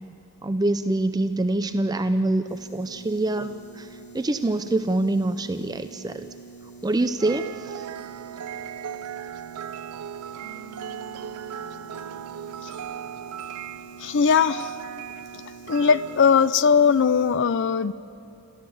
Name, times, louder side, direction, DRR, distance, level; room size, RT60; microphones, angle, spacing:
voice 1, 0.4-6.3 6.8-7.9, right 2 dB, 15° right, 10 dB, 0.4 m, -25 dB
sound 1, 2.5-17.3, right 4 dB, 70° left, 4.3 m, -46 dB
sound 2, 7.2-16.5, right 9 dB, 80° right, 0.4 m, -37 dB
voice 2, 14.0-14.8 15.7-17.9, left 6 dB, 55° left, 16 dB, 0.4 m, -20 dB
27.5 x 14.0 x 7.2 m, 2.9 s
head